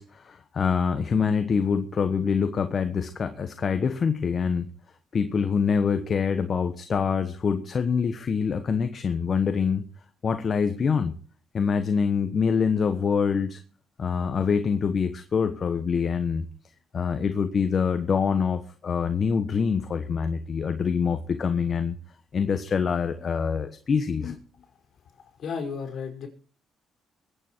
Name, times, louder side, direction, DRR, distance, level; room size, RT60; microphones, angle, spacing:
voice 1, 0.0-4.7 5.1-9.8 10.2-11.2 11.5-13.6 14.0-16.5 16.9-22.0 22.3-24.4, left 6 dB, 45° left, 8 dB, 1.2 m, -25 dB
voice 2, 25.1-26.3, left 5 dB, 60° left, 3 dB, 5.1 m, -34 dB
22.0 x 9.0 x 4.6 m, 0.41 s
cardioid pair, 90°, 0 cm